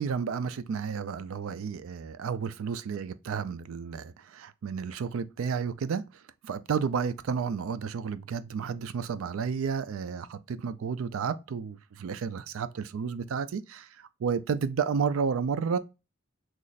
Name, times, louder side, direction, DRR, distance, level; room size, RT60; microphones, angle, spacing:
voice 1, 0.0-6.0 6.4-15.8, right 6 dB, 80° right, 0.4 m, -31 dB
3.1 x 2.4 x 3.9 m
head